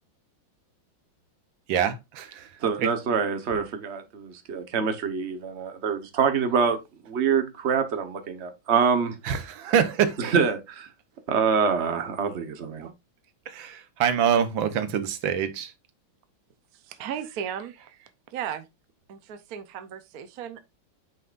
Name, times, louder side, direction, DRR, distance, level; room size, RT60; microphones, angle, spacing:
voice 1, 1.7-2.5 2.8-2.9 9.2-10.4 13.5-15.7, right 8 dB, 85° right, 1.7 m, -25 dB
voice 2, 2.6-6.8 7.1-9.2 10.2-10.9 11.3-12.9, right 6 dB, 40° right, 1.3 m, -25 dB
voice 3, 16.7-18.7 19.1-20.6, right 9 dB, 60° right, 1.2 m, -36 dB
9.2 x 5.7 x 2.5 m
omnidirectional pair, 2.1 m